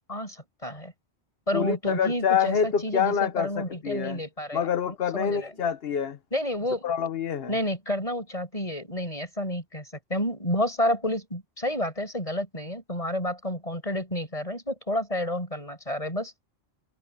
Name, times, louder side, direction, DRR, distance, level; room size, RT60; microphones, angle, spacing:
voice 1, 0.6-0.9 1.5-5.5 6.3-6.9 7.5-9.8 10.1-16.3, left 1 dB, 35° left, 7.9 m, -30 dB
voice 2, 1.5-4.2 4.5-6.2 6.8-7.5, left 7 dB, 65° left, 1.2 m, -26 dB
omnidirectional pair, 1.1 m